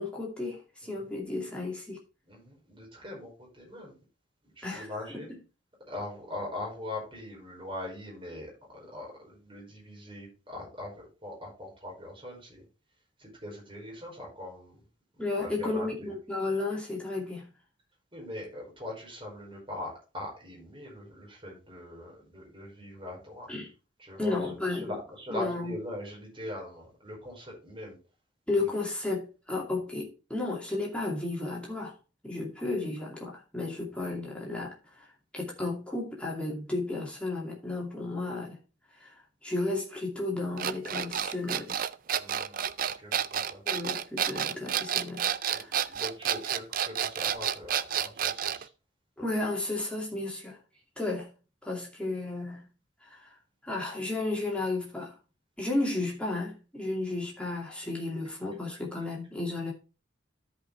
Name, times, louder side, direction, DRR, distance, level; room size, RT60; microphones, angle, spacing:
voice 1, 0.0-2.0 4.6-4.9 5.1-5.4 15.2-17.5 23.5-23.7 24.2-24.9 25.3-25.7 28.5-31.9 32.2-38.6 39.0-41.8 43.6-45.9 49.2-50.6 51.0-51.3 51.6-52.7 53.0-53.4 53.6-55.1 55.6-59.7, left 2 dB, 5° left, 2.5 m, -33 dB
voice 2, 2.3-4.0 4.5-5.3 5.9-12.6 13.2-14.8 15.1-16.1 18.1-23.5 24.0-28.0 28.5-28.7 42.1-43.6 45.5-48.7, left 1 dB, 25° right, 4.9 m, -41 dB
sound 1, 40.6-48.6, right 9 dB, 45° right, 0.4 m, -30 dB
13.5 x 5.2 x 3.4 m
head